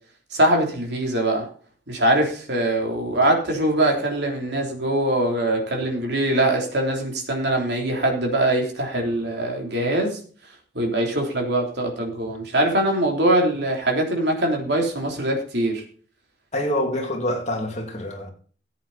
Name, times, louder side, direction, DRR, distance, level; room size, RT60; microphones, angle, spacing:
voice 1, 0.3-1.5 1.9-10.2 10.7-15.8, right 1 dB, 60° right, 3.4 m, -22 dB
voice 2, 16.5-18.3, left 1 dB, 40° left, 2.6 m, -26 dB
14.5 x 8.3 x 4.2 m
head